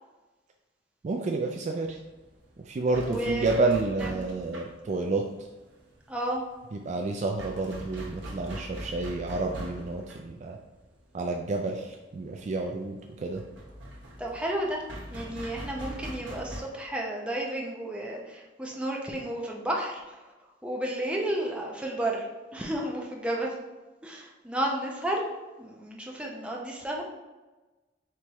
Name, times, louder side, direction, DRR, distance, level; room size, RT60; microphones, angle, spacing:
voice 1, 1.0-2.0 2.7-5.2 6.7-10.6 11.1-13.4, right 3 dB, 40° right, 2 dB, 0.3 m, -30 dB
sound 1, 1.9-16.6, equal, 80° right, 0.9 m, -43 dB
voice 2, 3.0-3.5 4.0-4.3 6.1-6.4 14.2-14.8 15.1-20.0 20.6-23.5 24.0-25.3 25.6-27.0, right 1 dB, 5° right, -2 dB, 0.6 m, -32 dB
4.5 x 3.4 x 3.0 m, 1.2 s
head